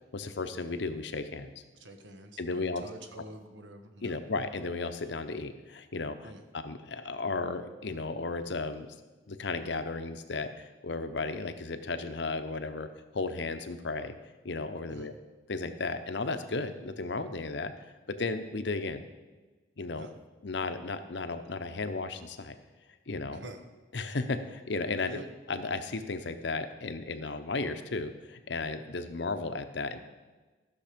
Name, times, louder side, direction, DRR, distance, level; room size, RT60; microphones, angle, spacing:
voice 1, 0.1-1.5 2.4-2.8 4.0-8.9 9.3-12.9 13.1-14.1 14.4-15.1 15.5-17.7 18.1-19.0 19.8-20.1 20.4-22.6 23.1-23.4 23.9-25.1 25.5-30.0, left 3 dB, 70° left, 9 dB, 0.7 m, -34 dB
voice 2, 1.8-4.2 6.2-6.4 14.9-15.1 19.9-20.1 23.3-23.6 25.0-25.3, right 1 dB, 90° right, 6 dB, 1.2 m, -46 dB
13.5 x 6.5 x 5.1 m, 1.3 s
head